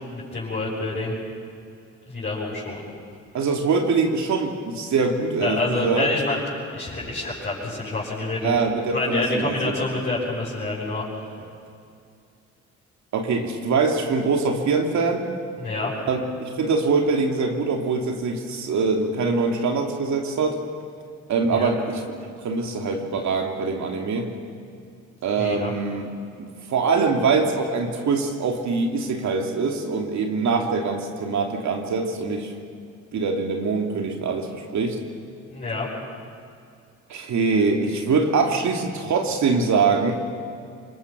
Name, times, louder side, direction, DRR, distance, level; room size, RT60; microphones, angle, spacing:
voice 1, 0.1-1.1 2.1-2.8 5.4-6.4 6.7-8.5 8.9-11.3 15.6-15.9 21.5-21.7 25.4-25.7 35.5-35.9, left 2 dB, 35° left, -9 dB, 7.7 m, -27 dB
voice 2, 3.3-6.1 8.4-9.7 13.1-15.3 16.1-20.6 21.3-22.0 22.4-24.3 25.2-26.1 26.4-32.5 33.1-35.0 37.1-40.1, right 4 dB, 70° right, 2 dB, 2.7 m, -23 dB
27.0 x 22.0 x 6.2 m, 2.4 s
cardioid pair, 90°, 30 cm